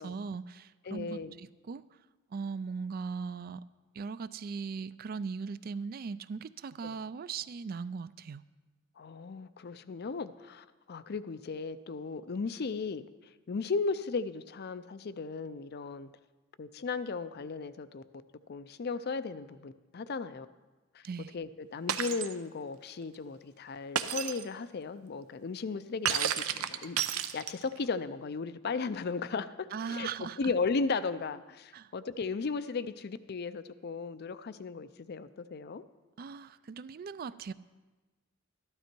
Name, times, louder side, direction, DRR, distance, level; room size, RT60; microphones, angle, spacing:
voice 1, 0.0-1.8 2.3-3.6 3.9-8.4 21.0-21.4 29.7-30.4 31.7-31.9 36.2-37.5, right 5 dB, 45° right, 16 dB, 0.3 m, -39 dB
voice 2, 0.9-1.4 6.8-7.0 9.0-13.0 13.5-16.1 16.6-18.0 18.5-20.5 20.9-21.0 21.3-35.8, left 4 dB, 50° left, 14 dB, 0.5 m, -36 dB
Shatter, 21.9-22.3 24.0-24.4 26.1-27.8, right 9 dB, 85° right, 0.6 m, -31 dB
13.5 x 12.0 x 4.5 m, 1.2 s
head